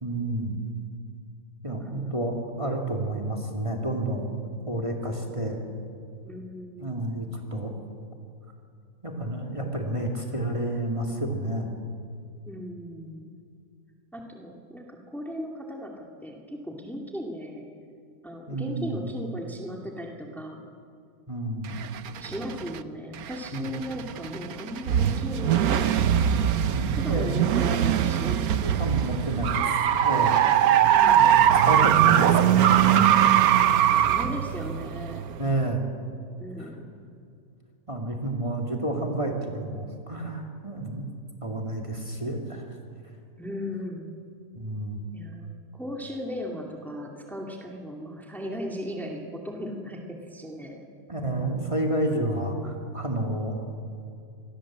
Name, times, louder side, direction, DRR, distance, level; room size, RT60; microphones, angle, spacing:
voice 1, 0.0-0.6 1.6-4.3 4.7-5.6 6.8-7.7 9.0-11.7 18.5-19.1 21.3-21.9 23.5-23.7 26.6-27.4 28.6-29.6 29.9-30.4 31.1-33.5 35.4-35.9 36.6-36.7 37.9-41.1 41.4-42.7 44.5-45.0 51.1-53.6, right 1 dB, 20° right, 1 dB, 2.5 m, -30 dB
voice 2, 1.8-2.2 6.2-7.1 12.5-13.4 14.1-17.7 18.2-20.6 22.2-26.0 26.9-28.8 30.8-31.3 34.0-35.3 36.4-36.9 43.4-44.2 45.1-50.9, equal, ahead, 1 dB, 2.3 m, -37 dB
sound 1, 21.6-22.8 23.2-35.8, right 10 dB, 75° right, 1.3 m, -21 dB
27.0 x 20.0 x 7.5 m, 2.4 s
omnidirectional pair, 1.6 m